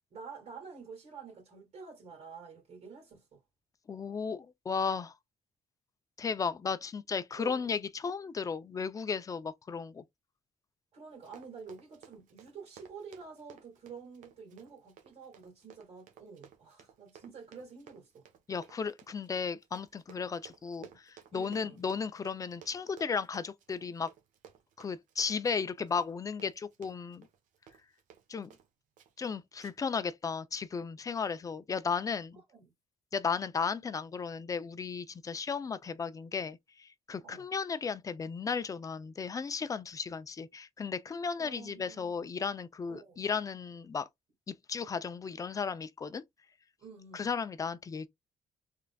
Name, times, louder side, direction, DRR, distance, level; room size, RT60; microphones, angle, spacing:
voice 1, 0.1-3.4 7.3-7.7 10.9-18.2 21.3-21.8 32.3-32.7 37.2-37.4 41.4-42.2 42.9-43.3 46.8-47.3, right 5 dB, 55° right, 2.0 m, -49 dB
voice 2, 3.9-5.1 6.2-10.0 18.5-24.1 24.8-27.3 28.3-28.5 29.2-32.4 33.1-44.1 44.5-46.2 47.1-48.1, left 5 dB, 25° left, 0.5 m, -35 dB
Run, 11.1-28.7 29.0-29.3 29.6-30.0 30.3-30.4, right 8 dB, 80° right, 1.0 m, -57 dB
3.8 x 3.3 x 2.3 m
cardioid pair, 125°, 13 cm